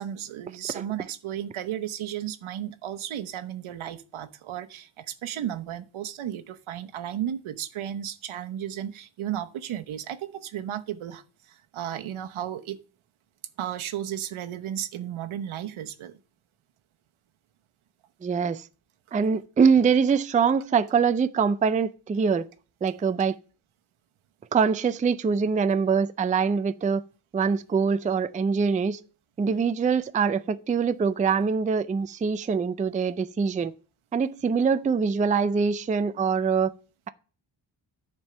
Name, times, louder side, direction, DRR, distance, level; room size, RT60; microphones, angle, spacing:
voice 1, 0.0-12.8 13.6-16.2, right 10 dB, 85° right, 1.0 m, -34 dB
voice 2, 18.2-18.6 19.1-22.5 22.8-23.4 24.5-27.0 27.3-29.0 29.4-33.7 34.1-36.7, right 5 dB, 20° right, 0.4 m, -24 dB
10.5 x 4.6 x 6.9 m
wide cardioid pair, 130°, 47 cm